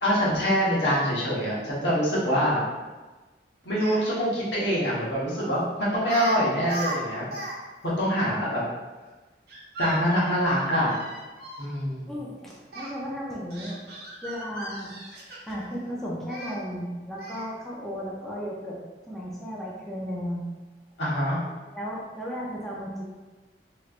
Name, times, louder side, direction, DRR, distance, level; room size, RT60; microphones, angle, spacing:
voice 1, 0.0-2.6 3.6-7.3 7.8-8.6 9.8-10.9 11.6-12.1 21.0-21.4, equal, 85° left, -7 dB, 1.2 m, -25 dB
Speech, 3.6-4.0 5.4-5.6 6.0-6.4 6.6-7.5 7.8-7.9 9.5-11.6 12.7-12.9 13.5-15.6 16.3-16.5 17.2-17.5, right 2 dB, 60° right, 0.8 m, -37 dB
voice 2, 12.1-13.8 14.2-14.9 15.5-18.8 19.1-20.4 21.7-23.0, equal, ahead, -6 dB, 0.5 m, -34 dB
3.1 x 3.0 x 2.4 m, 1.2 s
head